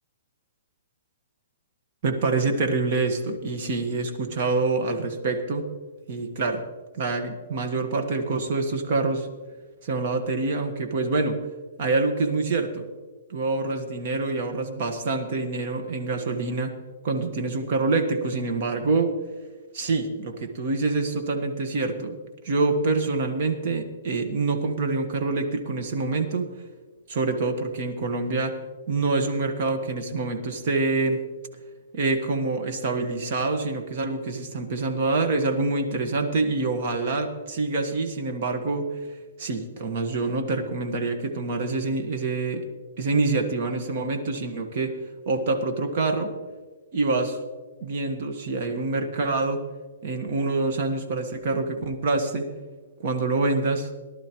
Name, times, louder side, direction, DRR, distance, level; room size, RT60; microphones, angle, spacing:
voice 1, 2.0-5.6 6.1-6.6 6.9-9.3 9.8-11.4 11.8-12.9 13.3-16.7 17.0-19.1 19.7-22.2 22.4-26.5 27.1-28.5 28.9-31.2 31.9-38.9 39.4-42.6 43.0-44.9 45.3-46.3 46.9-47.4 47.8-49.6 50.0-52.5 53.0-53.9, right 3 dB, 45° right, 5 dB, 1.4 m, -26 dB
18.0 x 11.5 x 3.0 m, 1.4 s
hypercardioid pair, 165°, 0 cm